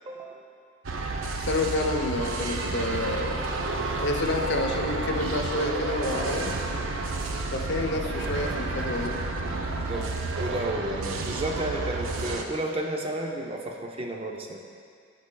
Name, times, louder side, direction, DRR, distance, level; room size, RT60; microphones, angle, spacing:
voice 1, 0.1-0.4 7.3-7.5 9.9-14.6, right 1 dB, 30° right, 2 dB, 0.5 m, -32 dB
sound 1, 0.8-12.4, right 3 dB, 75° right, 0.5 m, -31 dB
voice 2, 1.4-3.4 4.0-6.6 7.5-9.2, left 2 dB, 55° left, 2 dB, 0.6 m, -29 dB
13.5 x 4.8 x 2.2 m, 2.2 s
head